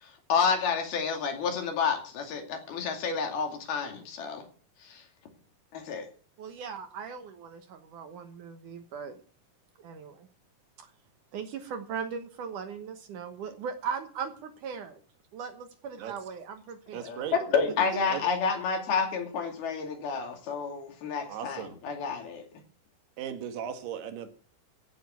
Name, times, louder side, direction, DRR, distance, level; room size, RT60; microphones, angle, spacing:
voice 1, 0.0-4.4 4.8-5.0 5.7-6.1 17.0-22.4, left 5 dB, 70° left, 4 dB, 4.4 m, -30 dB
voice 2, 6.4-9.2 9.8-10.3 10.8-10.9 11.3-15.0 15.3-17.0, right 6 dB, 65° right, 8 dB, 2.3 m, -38 dB
voice 3, 16.9-17.4 18.1-18.3 21.3-21.8 23.2-24.3, right 9 dB, 80° right, 8 dB, 3.6 m, -37 dB
15.5 x 6.9 x 8.3 m, 0.41 s
omnidirectional pair, 4.5 m